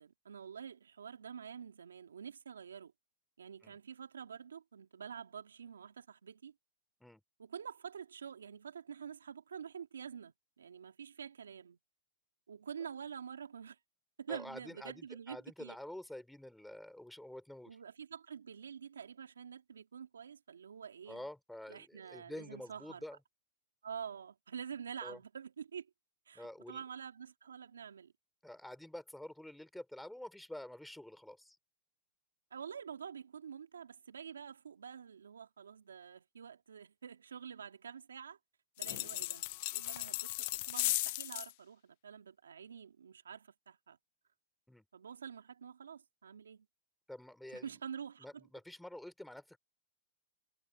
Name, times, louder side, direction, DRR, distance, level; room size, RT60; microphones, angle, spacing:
voice 1, 0.0-2.9 3.4-6.5 7.4-11.8 12.5-13.8 14.2-15.8 17.7-21.2 21.7-23.0 23.8-25.9 26.3-28.1 32.5-38.4 38.8-44.0 44.9-46.7 47.5-48.5, right 7 dB, 90° right, 2.6 m, -47 dB
voice 2, 14.3-17.8 21.1-23.2 25.0-25.2 26.3-26.8 28.4-31.6 44.7-44.8 47.1-47.7 48.2-49.6, left 1 dB, 5° left, 4.4 m, -48 dB
sound 1, 38.8-41.5, left 22 dB, 55° left, 0.6 m, -36 dB
hypercardioid pair, 110°, 0 cm